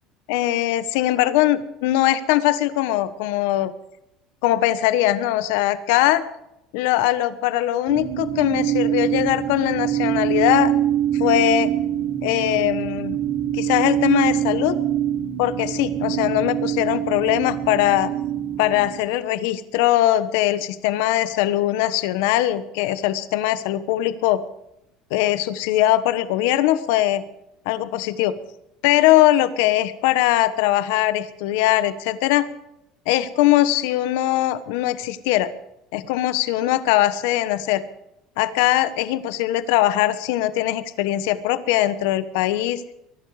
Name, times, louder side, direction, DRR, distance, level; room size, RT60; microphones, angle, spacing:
voice 1, 0.3-3.7 4.4-6.2 6.7-10.7 11.1-11.7 12.2-13.2 13.5-14.8 15.4-18.1 18.6-24.4 25.1-27.2 27.6-28.4 28.8-32.5 33.1-35.5 35.9-37.8 38.4-42.8, left 14 dB, 80° left, 13 dB, 1.2 m, -21 dB
sound 1, 7.9-19.0, right 11 dB, 75° right, 4.2 m, -24 dB
22.0 x 12.0 x 5.0 m, 0.85 s
supercardioid pair, 130°, 0 cm